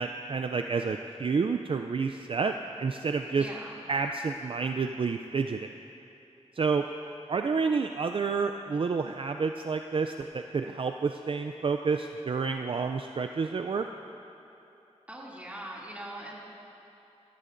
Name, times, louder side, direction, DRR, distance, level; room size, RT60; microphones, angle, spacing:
voice 1, 0.0-2.5 2.8-3.4 3.9-5.7 6.6-6.8 7.3-13.9, right 5 dB, 50° right, 6 dB, 0.4 m, -29 dB
voice 2, 3.4-3.8 15.1-16.3, right 1 dB, 15° right, -5 dB, 2.5 m, -41 dB
16.5 x 15.0 x 2.6 m, 2.9 s
wide cardioid pair, 75°, 11 cm